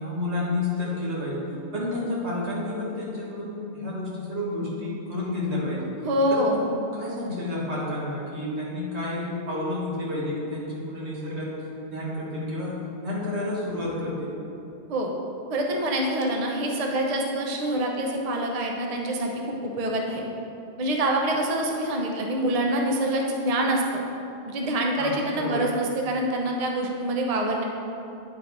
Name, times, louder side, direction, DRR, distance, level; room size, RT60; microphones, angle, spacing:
voice 1, 0.0-1.4 1.7-5.9 6.3-11.5 11.9-14.3 25.0-25.7, left 2 dB, 80° right, -6 dB, 1.9 m, -30 dB
voice 2, 6.0-6.6 14.9-15.1 15.5-20.2 20.8-24.0 24.5-27.6, right 1 dB, 40° right, 0 dB, 0.7 m, -26 dB
9.3 x 3.9 x 4.5 m, 2.7 s
omnidirectional pair, 1.1 m